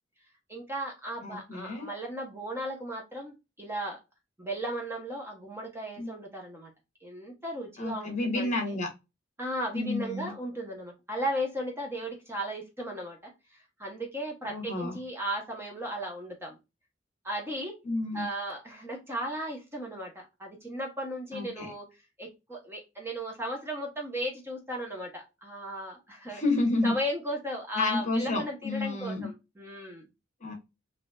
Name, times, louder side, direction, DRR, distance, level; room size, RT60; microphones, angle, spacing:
voice 1, 0.5-4.0 4.4-6.7 7.0-8.8 9.4-16.6 17.2-17.7 18.1-21.8 22.2-26.4 26.8-30.0, equal, 15° right, 0 dB, 0.9 m, -36 dB
voice 2, 1.2-1.9 6.0-6.1 7.8-8.9 9.7-10.3 14.5-15.0 17.8-18.3 21.3-21.7 26.3-26.9 27.7-29.3 30.4-30.5, left 2 dB, 40° left, 1 dB, 1.2 m, -30 dB
4.1 x 2.6 x 2.3 m, 0.24 s
head